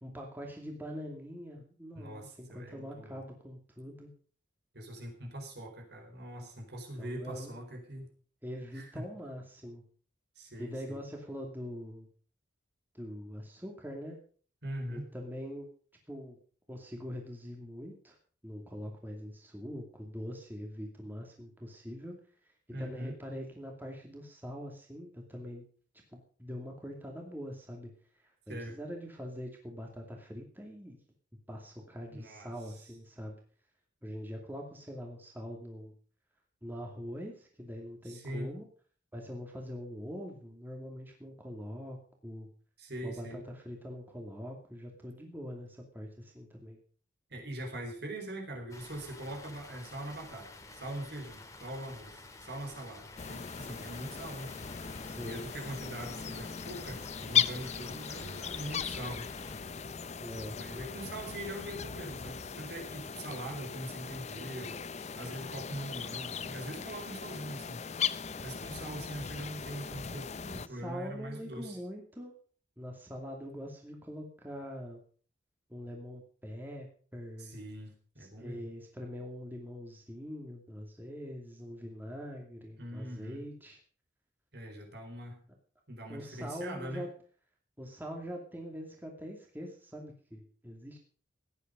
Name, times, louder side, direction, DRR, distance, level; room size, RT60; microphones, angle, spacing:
voice 1, 0.0-4.1 7.0-7.5 8.4-9.8 10.6-12.1 12.9-14.2 14.9-15.7 16.1-16.4 16.7-18.2 18.4-22.2 22.4-22.5 22.8-25.6 26.1-27.9 28.2-31.0 31.5-33.4 34.0-35.9 36.6-38.7 39.1-42.0 42.2-42.5 43.0-46.8 55.0-55.4 60.2-60.6 70.3-72.3 72.8-75.0 75.7-77.6 78.2-83.8 86.1-87.1 87.8-91.0, equal, 10° right, 1 dB, 2.5 m, -43 dB
voice 2, 1.9-3.2 4.7-8.1 8.7-9.1 10.4-11.0 14.6-15.1 22.7-23.1 28.5-28.8 32.1-32.8 38.0-38.5 42.8-43.5 47.3-54.5 55.3-59.3 60.4-64.8 65.2-67.9 68.4-71.8 77.4-78.7 82.8-83.4 84.5-85.4 85.9-87.0, right 1 dB, 55° right, 3 dB, 4.3 m, -42 dB
Water, 48.7-59.6, left 2 dB, 15° left, 2.0 m, -51 dB
sound 1, 53.2-70.7, left 7 dB, 35° left, 0.6 m, -38 dB
16.5 x 10.5 x 5.2 m, 0.42 s
head